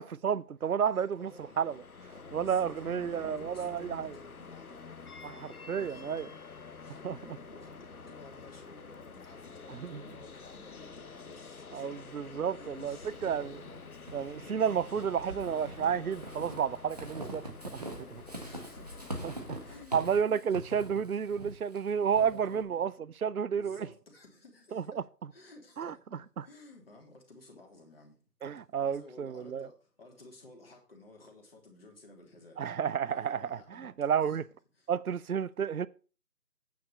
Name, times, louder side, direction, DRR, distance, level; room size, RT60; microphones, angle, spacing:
voice 1, 0.0-1.3 1.6-1.8 2.3-4.2 5.2-6.3 7.0-7.2 9.7-10.0 11.7-13.6 14.1-17.8 19.2-19.6 19.9-22.9 23.2-23.9 24.7-25.0 25.8-25.9 26.4-26.5 28.4-29.7 32.6-34.4 34.9-35.9, right 7 dB, 60° right, 0.6 m, -31 dB
voice 2, 0.9-1.6 2.1-4.9 5.8-6.1 6.8-12.0 12.5-13.1 13.4-13.6 14.9-15.0 17.9-19.2 19.6-20.0 22.2-22.9 23.5-25.0 25.3-28.2 28.8-32.6 33.1-33.9 34.2-34.4 34.8-34.9, left 2 dB, 35° left, 3.1 m, -54 dB
sound 1, 1.1-19.9, left 5 dB, 60° left, 1.0 m, -48 dB
Walk footsteps / Squeak, 13.0-22.6, right 1 dB, 25° right, 1.4 m, -44 dB
9.4 x 6.6 x 5.2 m
figure-of-eight pair, 170°, 49 cm